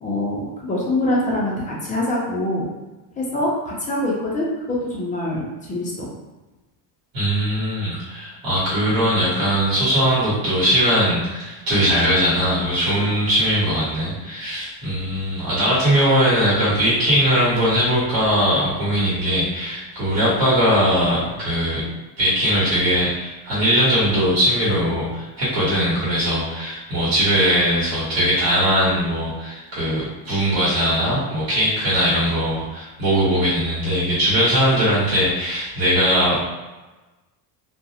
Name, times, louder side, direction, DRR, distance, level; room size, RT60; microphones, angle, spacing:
voice 1, 0.0-2.7 3.2-6.1 12.9-13.0, left 1 dB, 20° left, -5 dB, 0.3 m, -24 dB
voice 2, 7.1-21.8 22.2-36.5, equal, 60° right, -9 dB, 1.2 m, -20 dB
2.3 x 2.0 x 2.7 m, 1.1 s
cardioid pair, 155°, 41 cm